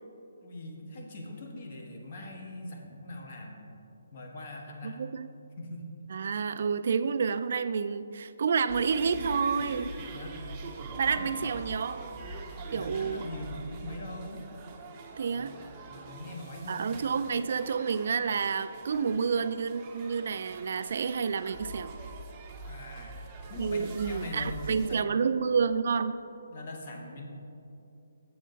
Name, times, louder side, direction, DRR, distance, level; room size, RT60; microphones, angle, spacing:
voice 1, 0.4-3.8 4.1-5.0 5.6-6.2 10.1-10.4 11.3-11.4 12.4-14.4 15.9-16.9 22.6-23.2 23.5-25.0 26.5-27.3, left 1 dB, 45° left, 1 dB, 1.4 m, -41 dB
voice 2, 4.8-5.3 6.1-9.9 11.0-12.1 12.7-13.2 15.2-15.6 16.7-21.9 23.6-26.2, right 6 dB, 55° right, 11 dB, 0.3 m, -29 dB
sound 1, 8.7-24.9, right 3 dB, 20° right, 0.7 m, -43 dB
7.8 x 7.5 x 3.9 m, 2.7 s
hypercardioid pair, 155°, 0 cm